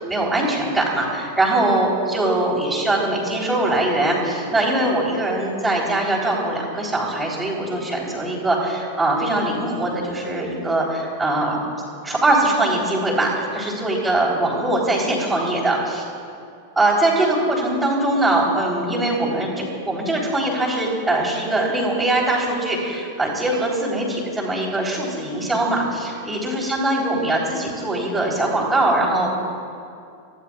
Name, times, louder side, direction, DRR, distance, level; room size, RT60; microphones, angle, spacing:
voice 1, 0.0-11.6 12.0-16.0 16.8-29.4, right 2 dB, 10° right, -4 dB, 3.9 m, -22 dB
25.5 x 15.5 x 2.5 m, 2.5 s
figure-of-eight pair, 90°, 0 cm